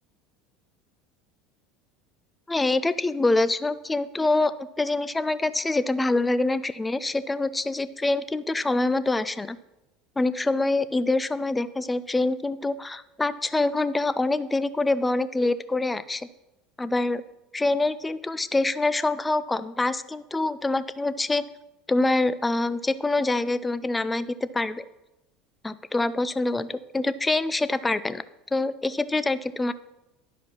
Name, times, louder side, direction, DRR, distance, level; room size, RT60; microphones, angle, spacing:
voice 1, 2.5-4.5 4.8-9.6 10.2-16.3 16.8-17.2 17.5-21.4 21.9-24.8 25.6-28.2 28.5-29.7, left 2 dB, 15° left, 15 dB, 0.5 m, -25 dB
11.0 x 5.0 x 5.6 m, 0.95 s
hypercardioid pair, 90°, 0 cm